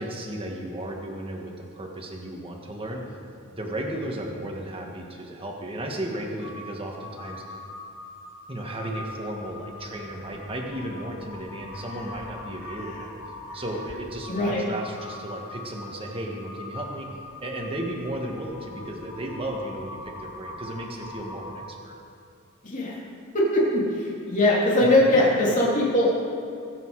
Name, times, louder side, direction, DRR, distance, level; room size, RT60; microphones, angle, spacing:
voice 1, 0.0-3.0 3.5-7.6 8.5-13.2 13.5-17.1 17.4-22.0, right 1 dB, 25° right, 1 dB, 1.7 m, -34 dB
Crow, 6.4-21.9, left 2 dB, 75° left, 2.1 m, -42 dB
voice 2, 14.3-14.7 22.6-23.0 23.3-26.1, left 1 dB, 35° left, -4 dB, 2.9 m, -21 dB
21.0 x 8.2 x 4.8 m, 2.4 s
head